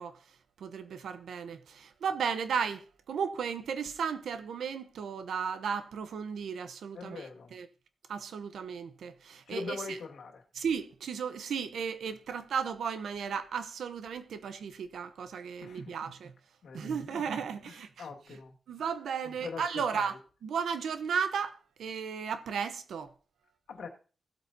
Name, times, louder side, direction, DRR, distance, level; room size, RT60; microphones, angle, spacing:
voice 1, 0.0-7.7 8.1-10.0 10.5-16.3 16.7-18.4 18.7-20.1 20.4-23.1, right 6 dB, 85° right, 0.9 m, -35 dB
voice 2, 6.9-7.5 9.5-10.4 15.6-15.9 16.6-16.9 17.6-17.7 18.0-18.5 19.2-19.6 19.9-20.1 23.7-23.9, left 4 dB, 85° left, 2.1 m, -41 dB
16.0 x 8.3 x 2.8 m
wide cardioid pair, 125°, 0 cm